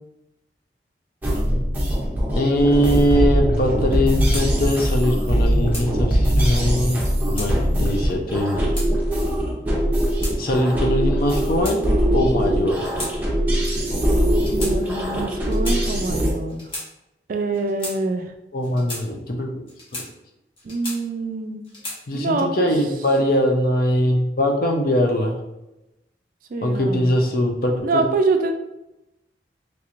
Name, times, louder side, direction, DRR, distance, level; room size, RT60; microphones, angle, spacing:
sound 1, 1.2-16.3, equal, 10° right, 0.6 m, -21 dB
voice 1, 2.3-7.0 7.3-8.7 10.4-11.8 12.1-12.9 18.5-19.6 19.9-20.0 22.1-25.4 26.6-28.1, equal, 55° left, 2 dB, 0.5 m, -21 dB
sound 2, 4.3-4.5 5.3-5.9 6.9-7.5 8.3-8.9 9.8-10.4 11.2-12.1 12.8-13.1 13.4-13.6 14.4-14.7 15.4-15.8 16.5-16.9 17.5-18.0 18.6-19.0 19.7-20.1 20.6-21.2 21.6-22.0, left 1 dB, 30° left, 0.9 m, -34 dB
voice 2, 14.5-16.7 17.3-18.3 20.6-21.6 22.1-22.7 26.5-27.1 27.8-28.5, right 3 dB, 50° right, 5 dB, 0.3 m, -25 dB
3.2 x 3.0 x 2.5 m, 0.93 s
head